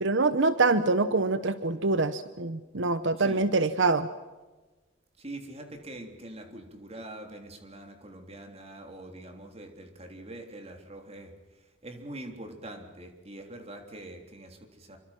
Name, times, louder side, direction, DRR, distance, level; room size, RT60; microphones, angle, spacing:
voice 1, 0.0-4.1, right 3 dB, 80° right, 12 dB, 1.0 m, -25 dB
voice 2, 5.2-11.3 11.8-15.0, right 1 dB, 35° right, 4 dB, 3.6 m, -44 dB
28.0 x 24.5 x 6.0 m, 1.2 s
head